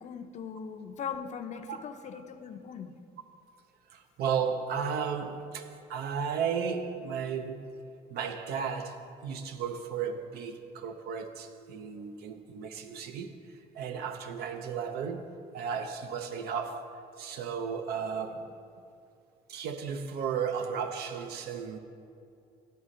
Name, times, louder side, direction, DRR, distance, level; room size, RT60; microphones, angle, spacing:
voice 1, 0.0-2.9, left 7 dB, 45° left, 0.5 m, -40 dB
voice 2, 3.9-7.8 8.1-18.5 19.5-21.8, right 6 dB, 70° right, 0.5 m, -34 dB
12.0 x 4.1 x 3.7 m
cardioid pair, 110°, 17 cm